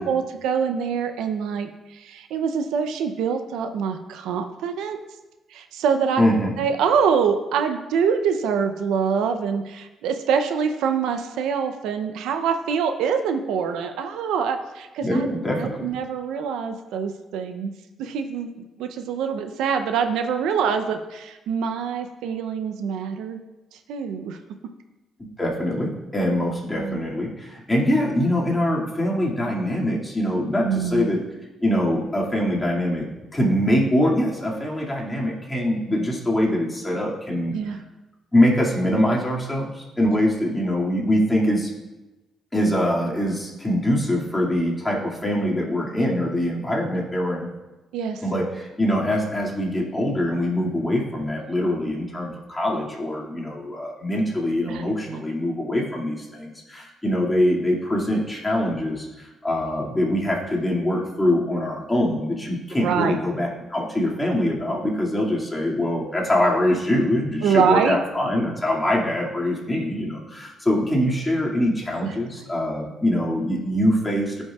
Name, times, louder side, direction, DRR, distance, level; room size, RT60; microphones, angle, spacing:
voice 1, 0.0-5.0 5.5-6.2 6.6-17.7 18.0-23.4 23.7-24.4 26.7-27.0 30.6-31.1 37.5-37.8 40.0-40.2 47.9-48.2 54.7-55.2 62.8-63.2 67.4-68.0 72.0-72.1, right 6 dB, 90° right, 7 dB, 0.5 m, -25 dB
voice 2, 6.2-6.5 15.0-15.9 25.2-31.2 31.6-37.6 38.3-41.7 42.5-47.5 48.2-74.4, left 1 dB, 15° left, -3 dB, 2.1 m, -23 dB
14.0 x 5.4 x 2.3 m, 1.1 s
cardioid pair, 90°, 0 cm